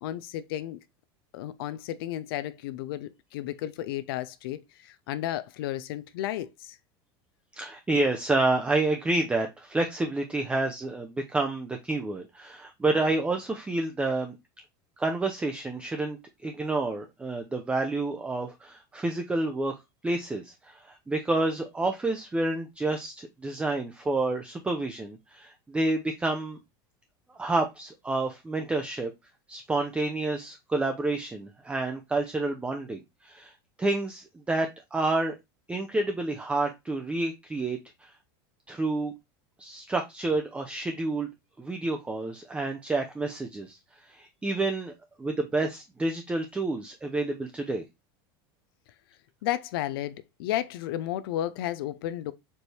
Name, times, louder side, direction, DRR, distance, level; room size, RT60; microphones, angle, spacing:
voice 1, 0.0-0.8 1.3-6.8 49.4-52.3, left 13 dB, 75° left, 0.4 m, -33 dB
voice 2, 7.5-14.4 15.0-19.8 20.0-26.6 27.3-29.1 29.5-33.5 33.8-35.3 35.7-38.1 38.7-39.1 39.6-41.3 41.6-44.9 45.2-47.8, right 2 dB, 10° right, 0.5 m, -29 dB
4.4 x 2.7 x 3.2 m
supercardioid pair, 125°, 12 cm